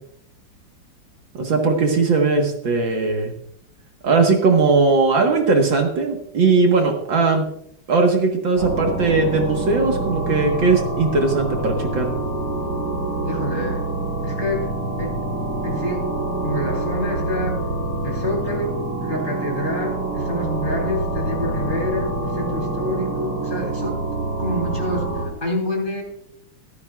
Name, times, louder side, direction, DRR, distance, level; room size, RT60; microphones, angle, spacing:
voice 1, 1.3-3.3 4.0-7.5 7.9-12.1, right 3 dB, 60° right, 2 dB, 2.2 m, -19 dB
sound 1, 8.6-25.3, right 2 dB, 80° right, 5.7 m, -26 dB
voice 2, 13.2-13.9 14.2-15.2 15.6-16.1 16.4-17.6 18.0-24.0 24.4-26.0, left 1 dB, 20° left, 0 dB, 3.4 m, -27 dB
16.5 x 13.0 x 2.4 m, 0.66 s
omnidirectional pair, 2.4 m